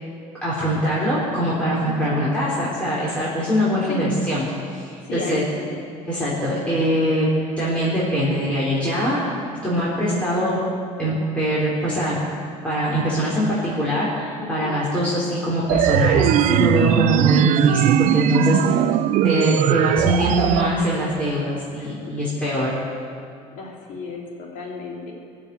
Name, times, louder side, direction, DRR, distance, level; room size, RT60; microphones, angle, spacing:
voice 1, 0.4-4.5 4.7-5.4 6.1-7.3 7.6-9.2 9.6-10.6 11.0-12.2 12.6-18.8 19.2-22.8, equal, 10° left, -8 dB, 3.8 m, -22 dB
voice 2, 1.9-2.2 3.9-4.0 5.0-5.7 14.4-14.8 18.7-18.9 21.7-22.5 23.5-25.1, left 4 dB, 65° left, -2 dB, 3.5 m, -34 dB
sound 1, 15.7-20.7, right 12 dB, 60° right, 0.5 m, -19 dB
21.5 x 7.2 x 8.2 m, 2.4 s
cardioid pair, 130°, 14 cm